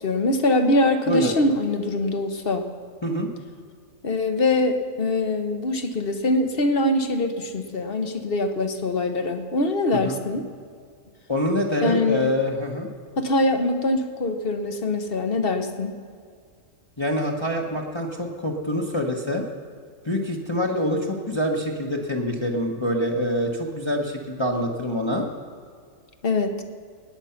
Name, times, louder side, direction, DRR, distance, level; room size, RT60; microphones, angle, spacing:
voice 1, 0.0-2.7 4.0-10.4 11.8-12.3 13.2-16.0 26.2-26.5, left 2 dB, 45° left, 7 dB, 1.1 m, -23 dB
voice 2, 11.3-12.9 17.0-19.4 20.0-25.3, equal, 20° left, 0 dB, 1.0 m, -25 dB
17.5 x 9.9 x 5.8 m, 2.1 s
omnidirectional pair, 1.4 m